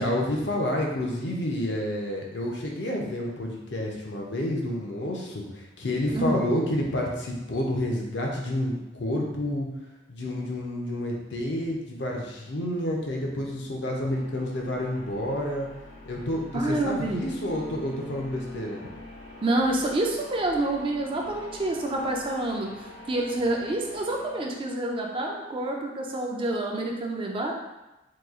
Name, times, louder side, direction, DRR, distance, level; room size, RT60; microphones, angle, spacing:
voice 1, 0.0-9.7 10.1-15.7 16.1-18.8, left 1 dB, 65° left, -1 dB, 0.6 m, -29 dB
voice 2, 6.1-6.5 16.5-17.4 19.4-22.7 23.1-27.5, right 2 dB, 30° right, 0 dB, 0.4 m, -27 dB
sound 1, 12.4-25.2, left 2 dB, 45° right, 0.9 m, -46 dB
3.0 x 2.3 x 3.6 m, 1.0 s
head